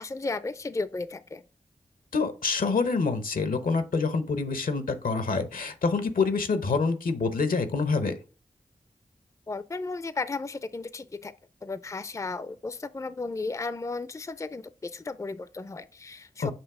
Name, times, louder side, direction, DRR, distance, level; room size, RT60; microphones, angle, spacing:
voice 1, 0.0-1.4 9.5-11.3 11.6-16.5, left 3 dB, 20° left, 0.4 m, -34 dB
voice 2, 2.1-8.1 16.4-16.5, left 4 dB, 80° left, 0.9 m, -26 dB
7.3 x 2.9 x 4.8 m
cardioid pair, 45°, 14 cm